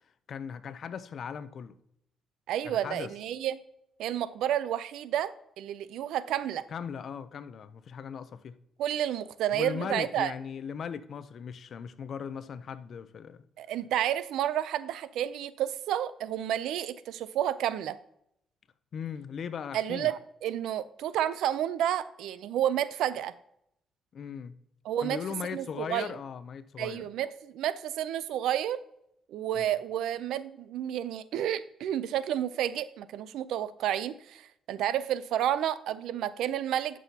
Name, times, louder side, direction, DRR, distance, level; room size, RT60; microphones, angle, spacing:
voice 1, 0.3-1.8 2.6-3.1 6.7-8.6 9.5-13.5 18.9-20.1 24.1-24.6 25.0-27.1 29.5-29.7, left 7 dB, 55° left, 0.5 m, -38 dB
voice 2, 2.5-3.6 4.0-6.6 8.8-10.3 13.6-18.0 19.7-23.3 24.9-25.2 25.5-26.1 26.8-28.8 29.3-37.0, right 11 dB, 85° right, 0.4 m, -30 dB
11.5 x 6.2 x 2.8 m
cardioid pair, 90°, 0 cm